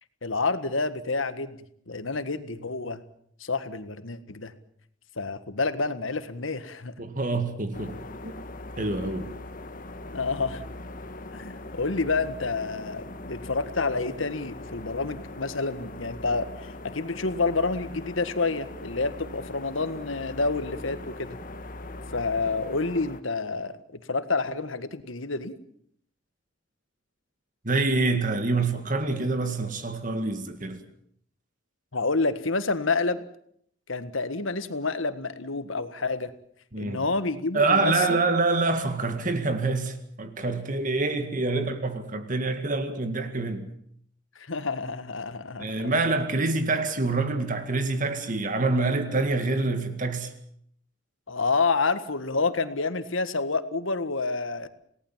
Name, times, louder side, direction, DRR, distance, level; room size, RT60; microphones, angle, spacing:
voice 1, 0.2-3.0 3.4-4.5 5.2-6.9 10.0-10.7 11.3-21.4 22.1-25.6 31.9-33.2 33.9-36.3 36.8-38.2 41.5-41.7 44.4-46.1 51.3-54.7, left 3 dB, 80° left, 1.7 m, -29 dB
voice 2, 7.0-7.9 8.2-8.3 8.8-9.3 27.6-30.8 36.7-37.0 37.5-43.7 45.6-50.3, right 3 dB, 40° right, 2.0 m, -26 dB
sound 1, 7.7-23.2, left 2 dB, 45° left, 1.5 m, -41 dB
28.0 x 18.5 x 7.4 m
head